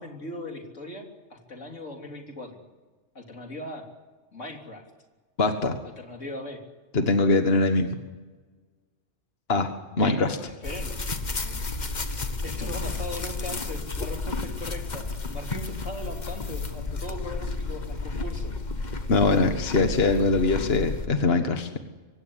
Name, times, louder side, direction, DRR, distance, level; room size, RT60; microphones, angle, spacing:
voice 1, 0.0-2.6 3.2-3.9 4.3-4.8 6.0-6.6 10.0-10.2 10.6-10.9 11.4-11.6 12.4-18.5, left 1 dB, 85° left, 2 dB, 3.9 m, -39 dB
voice 2, 5.4-5.8 6.9-7.9 9.5-9.7 10.0-10.4 19.1-21.8, left 3 dB, 55° left, 6 dB, 1.8 m, -22 dB
sound 1, 10.6-21.1, left 3 dB, 40° left, 1.5 m, -32 dB
24.5 x 17.0 x 10.0 m, 1.3 s
omnidirectional pair, 1.3 m